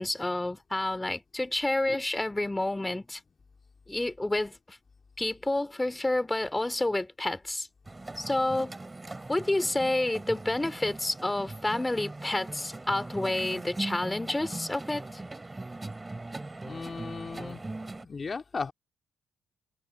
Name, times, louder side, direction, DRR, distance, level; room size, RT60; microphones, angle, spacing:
voice 1, 0.0-3.2 3.9-4.8 5.2-7.7 8.2-8.7 9.3-15.2, left 2 dB, 15° left, 2.6 m, -29 dB
sound 1, 7.8-18.0, right 2 dB, 20° right, 2.6 m, -40 dB
voice 2, 16.6-17.7 18.0-18.7, left 4 dB, 35° left, 2.6 m, -36 dB
cardioid pair, 90°, 0 cm